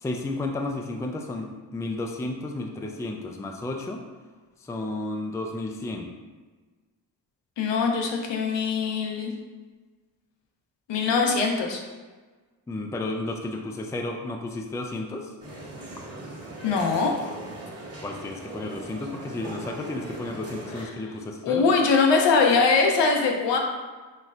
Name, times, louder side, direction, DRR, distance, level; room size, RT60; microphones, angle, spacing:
voice 1, 0.0-4.0 4.7-6.1 12.7-15.3 18.0-21.6, left 2 dB, 5° left, 2 dB, 0.4 m, -32 dB
voice 2, 7.6-9.3 10.9-11.8 16.6-17.2 20.7-21.2 21.4-23.6, left 4 dB, 70° left, 1 dB, 0.7 m, -22 dB
sound 1, 15.4-20.8, right 1 dB, 35° right, 1.4 m, -39 dB
4.3 x 3.1 x 2.5 m, 1.3 s
supercardioid pair, 50°, 45 cm